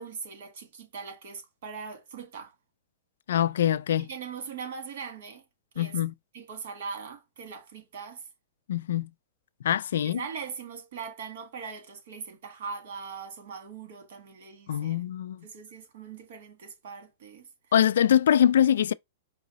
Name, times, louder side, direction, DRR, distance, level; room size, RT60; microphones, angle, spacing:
voice 1, 0.0-2.5 4.0-5.4 5.7-6.0 6.3-8.3 10.0-15.1 15.4-17.5, right 6 dB, 65° right, 1.7 m, -40 dB
voice 2, 3.3-4.1 5.8-6.1 8.7-9.1 9.6-10.2 14.7-15.4 17.7-18.9, left 10 dB, 80° left, 0.3 m, -23 dB
4.7 x 2.0 x 3.9 m
hypercardioid pair, 150°, 0 cm